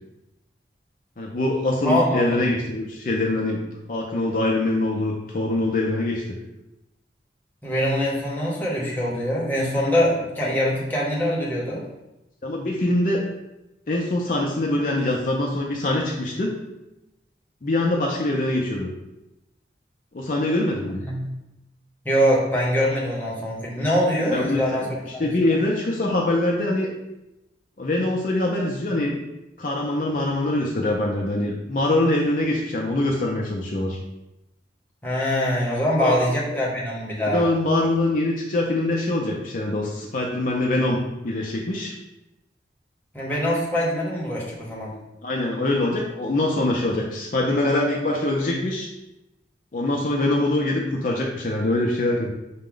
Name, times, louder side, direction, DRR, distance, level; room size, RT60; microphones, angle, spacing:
voice 1, 1.2-6.2 12.4-13.2 13.9-16.6 17.6-18.9 20.1-21.0 24.3-26.9 27.8-29.2 29.6-34.0 36.0-36.2 37.2-41.0 41.2-41.9 45.2-48.9 49.7-52.3, left 2 dB, 45° left, -1 dB, 0.5 m, -23 dB
voice 2, 1.8-2.4 7.6-11.8 21.0-21.2 22.0-25.6 35.0-37.4 43.1-44.9, equal, 10° left, -4 dB, 0.9 m, -23 dB
5.8 x 2.2 x 3.7 m, 0.94 s
head